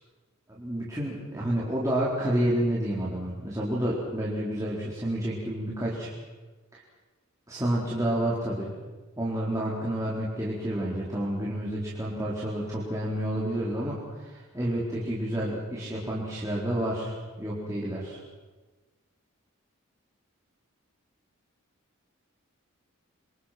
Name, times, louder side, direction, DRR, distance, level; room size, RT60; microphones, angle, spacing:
voice 1, 0.5-6.1 6.7-6.8 7.5-8.7 9.2-18.2, right 1 dB, 15° right, -6 dB, 4.3 m, -29 dB
28.5 x 26.0 x 6.0 m, 1.3 s
head